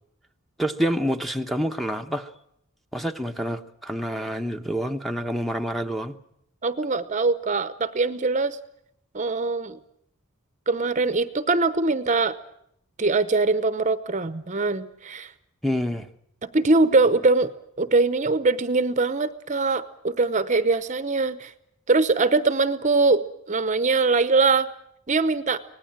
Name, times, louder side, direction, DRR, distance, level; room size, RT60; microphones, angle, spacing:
voice 1, 0.6-2.3 2.9-6.1 15.6-16.1, equal, ahead, 0.9 m, -27 dB
voice 2, 6.6-8.6 9.1-9.8 10.7-12.4 13.0-15.3 16.5-17.5 17.8-21.5 21.9-24.7 25.1-25.6, right 3 dB, 35° right, 0.8 m, -22 dB
25.0 x 18.5 x 8.9 m
head